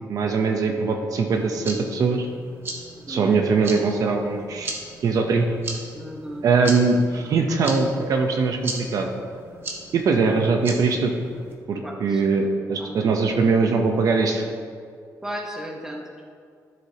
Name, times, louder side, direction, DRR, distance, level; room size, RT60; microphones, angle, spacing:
voice 1, 0.1-2.3 3.1-4.8 5.0-5.5 6.4-9.1 9.9-11.1 11.7-14.4, right 4 dB, 55° right, 3 dB, 0.8 m, -21 dB
sound 1, 1.3-11.5, right 2 dB, 35° right, 1.2 m, -38 dB
voice 2, 5.9-6.4 11.8-12.2 12.8-13.2 15.2-16.2, equal, 10° right, 0 dB, 1.0 m, -35 dB
12.5 x 7.5 x 2.9 m, 2.1 s
cardioid pair, 150°, 7 cm